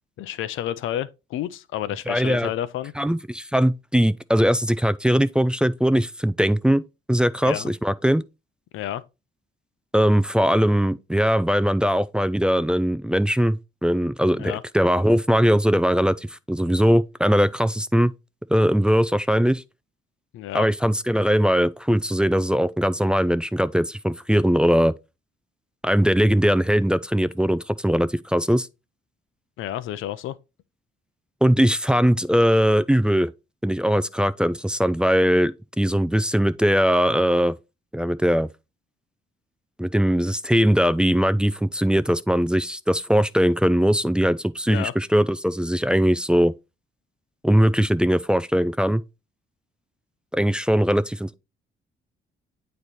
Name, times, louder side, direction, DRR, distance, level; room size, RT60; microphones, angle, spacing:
voice 1, 0.2-2.9 7.4-7.7 8.7-9.0 14.4-14.6 20.3-20.7 29.6-30.4 44.7-44.9, left 12 dB, 85° left, 0.7 m, -30 dB
voice 2, 2.1-2.5 3.0-6.8 7.1-8.2 9.9-18.1 18.5-19.6 20.5-24.9 25.8-28.7 31.4-33.3 33.6-37.5 37.9-38.5 39.8-46.5 47.4-49.0 50.3-51.3, equal, 5° right, 0.4 m, -20 dB
8.9 x 3.2 x 4.2 m
cardioid pair, 90°, 20 cm